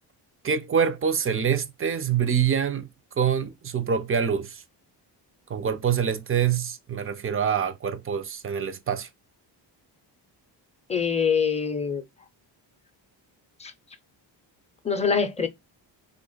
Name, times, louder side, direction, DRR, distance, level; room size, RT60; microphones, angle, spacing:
voice 1, 0.4-2.9 3.2-4.6 5.5-9.1, right 7 dB, 30° right, 0.4 m, -25 dB
voice 2, 10.9-12.0 13.6-13.7 14.8-15.5, left 6 dB, 15° left, 0.6 m, -24 dB
3.4 x 2.4 x 3.8 m
cardioid pair, 110°, 45 cm